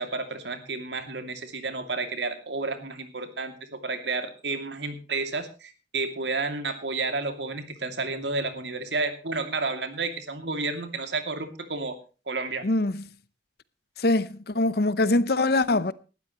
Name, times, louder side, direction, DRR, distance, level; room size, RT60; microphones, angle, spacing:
voice 1, 0.0-12.0 12.3-12.6, right 3 dB, 80° right, 2.6 m, -31 dB
voice 2, 12.6-13.0 14.0-15.9, left 2 dB, 60° left, 0.8 m, -23 dB
18.5 x 13.0 x 3.1 m
head